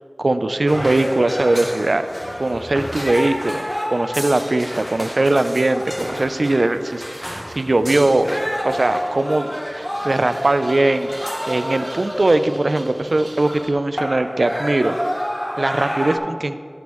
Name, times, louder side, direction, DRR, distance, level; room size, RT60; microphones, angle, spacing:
voice 1, 0.2-2.0 2.4-8.4 8.6-9.5 9.7-11.1 11.5-15.1 15.6-16.6, right 2 dB, 90° right, 10 dB, 0.3 m, -20 dB
sound 1, 0.7-13.6 14.0-16.2, equal, 10° left, 0.9 m, -29 dB
sound 2, 7.7-13.7, right 1 dB, 65° right, 1.0 m, -42 dB
11.0 x 6.9 x 3.1 m, 2.2 s
wide cardioid pair, 45°, 0 cm